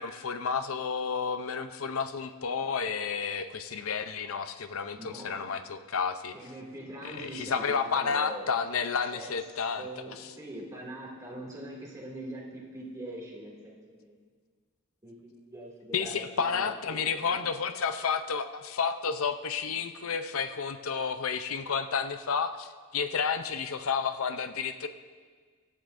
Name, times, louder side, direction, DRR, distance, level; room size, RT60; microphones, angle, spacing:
voice 1, 0.0-6.3 7.0-10.3 15.9-24.9, left 6 dB, 65° left, 9 dB, 0.6 m, -31 dB
voice 2, 5.0-5.5 6.3-8.5 9.1-9.4 9.8-14.2 15.0-17.5, right 1 dB, 15° right, -5 dB, 2.4 m, -43 dB
16.5 x 12.0 x 2.6 m, 1.6 s
head